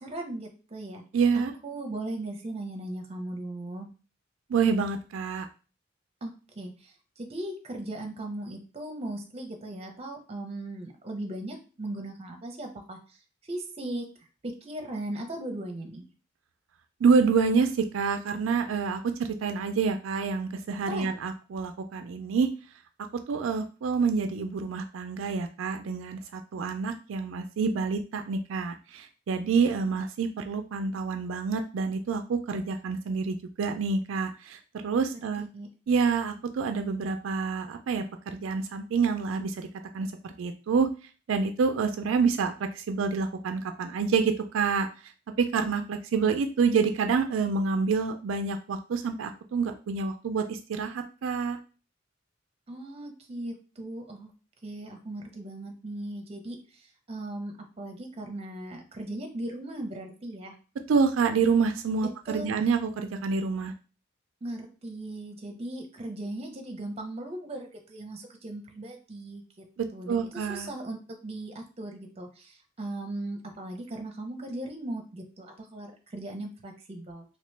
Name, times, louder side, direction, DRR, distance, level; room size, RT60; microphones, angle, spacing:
voice 1, 0.0-1.0 1.3-3.9 6.2-13.0 13.4-14.0 14.4-16.0 20.9-21.1 35.1-35.7 52.7-54.3 54.6-60.5 62.3-62.5 64.4-69.4 69.9-77.2, right 1 dB, 30° right, 3 dB, 0.7 m, -38 dB
voice 2, 1.1-1.5 4.5-5.5 17.0-22.5 23.3-35.4 35.9-39.7 39.9-40.9 41.3-44.9 45.4-51.6 60.9-63.7 69.8-70.7, right 5 dB, 85° right, 7 dB, 0.4 m, -27 dB
2.9 x 2.9 x 3.3 m, 0.35 s
head